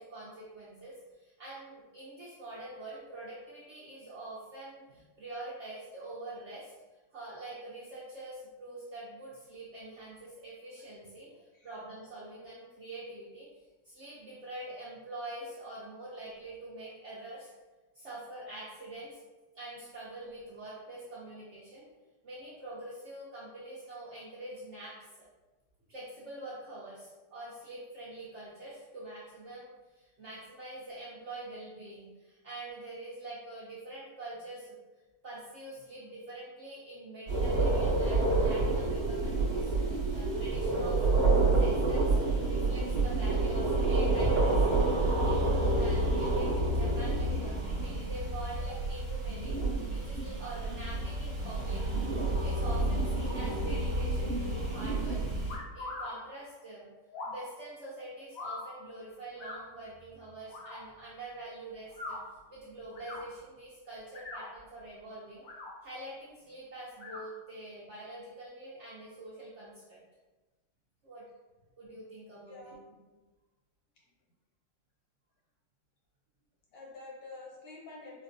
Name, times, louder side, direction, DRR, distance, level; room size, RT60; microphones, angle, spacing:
voice 1, 0.0-6.7 7.1-11.3 11.6-13.5 13.8-17.5 17.9-19.2 19.5-21.9 22.2-25.0 25.9-34.8 35.2-41.2 41.6-49.6 49.9-51.8 52.4-55.2 55.7-56.9 57.2-62.2 62.5-65.4 65.8-70.0 71.0-71.2 71.8-72.7, right 2 dB, 70° right, -7 dB, 0.6 m, -45 dB
sound 1, 37.3-55.6, right 2 dB, 45° right, 1.0 m, -28 dB
sound 2, 55.5-56.1 57.1-57.4 58.3-58.6 59.4-59.6 60.5-60.8 61.9-62.2 62.9-63.2 64.0-64.5 65.3-65.7 67.0-67.2, left 2 dB, 60° left, 1.0 m, -41 dB
voice 2, 76.7-78.2, left 3 dB, 80° left, -3 dB, 1.5 m, -47 dB
4.5 x 2.1 x 2.5 m, 1.2 s
omnidirectional pair, 2.0 m